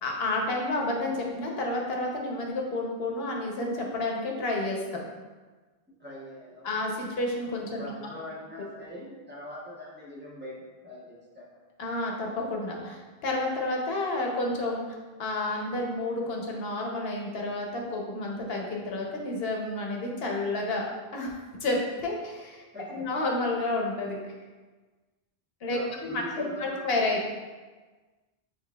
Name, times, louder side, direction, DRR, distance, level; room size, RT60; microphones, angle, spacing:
voice 1, 0.0-5.0 6.6-7.9 11.8-20.9 21.1-22.6 22.9-24.2 25.6-26.2 26.6-27.3, left 2 dB, 70° left, 0 dB, 1.0 m, -30 dB
voice 2, 6.0-6.7 7.8-11.6 22.7-23.1 25.7-27.3, left 1 dB, 10° right, -7 dB, 0.8 m, -42 dB
6.6 x 2.8 x 2.2 m, 1.3 s
omnidirectional pair, 1.1 m